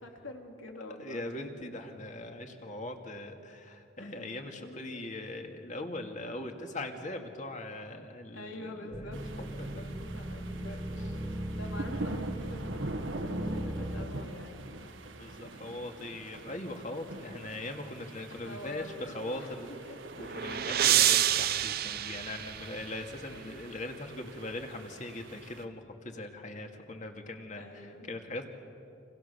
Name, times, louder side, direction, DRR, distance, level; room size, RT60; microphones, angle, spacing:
voice 1, 0.0-1.7 4.0-4.3 4.6-5.0 8.3-14.8 15.2-15.4 18.3-19.5 19.9-20.7 23.3-23.8 27.6-28.1, left 1 dB, 85° left, 2 dB, 3.6 m, -46 dB
voice 2, 1.0-9.1 9.6-9.8 15.2-18.9 19.1-19.7 20.2-28.5, left 2 dB, 40° left, 4 dB, 2.4 m, -40 dB
sound 1, 8.9-14.1, right 1 dB, 15° right, 1.5 m, -38 dB
sound 2, 9.1-25.6, right 2 dB, 80° right, 1.6 m, -44 dB
sound 3, 19.7-23.1, right 12 dB, 50° right, 0.6 m, -28 dB
29.0 x 27.0 x 7.0 m, 2.6 s
head